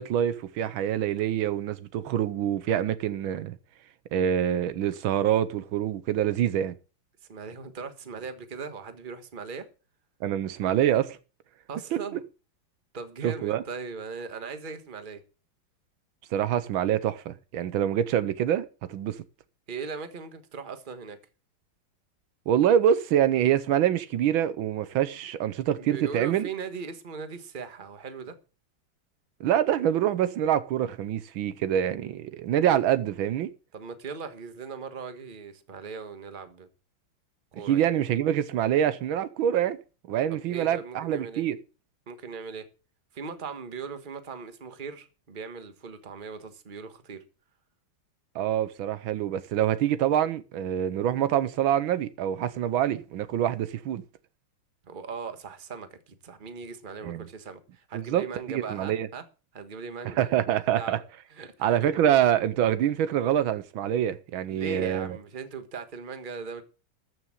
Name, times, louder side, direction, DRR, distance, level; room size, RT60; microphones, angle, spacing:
voice 1, 0.0-3.6 4.1-6.7 10.2-11.1 11.9-12.0 13.2-13.6 16.3-19.2 22.5-26.5 29.4-33.5 37.7-39.8 40.1-41.6 48.3-54.0 57.0-57.2 57.9-59.1 60.0-61.0 61.6-65.2, right 10 dB, 80° right, 1.5 m, -25 dB
voice 2, 7.3-9.7 11.7-12.2 12.9-15.2 19.7-21.2 25.8-28.3 33.7-36.7 37.5-37.9 40.3-41.4 42.1-42.7 43.1-47.2 54.8-59.2 59.5-60.3 60.7-61.0 61.3-61.8 64.5-66.6, right 5 dB, 30° right, 1.3 m, -39 dB
14.0 x 6.3 x 7.3 m
omnidirectional pair, 2.2 m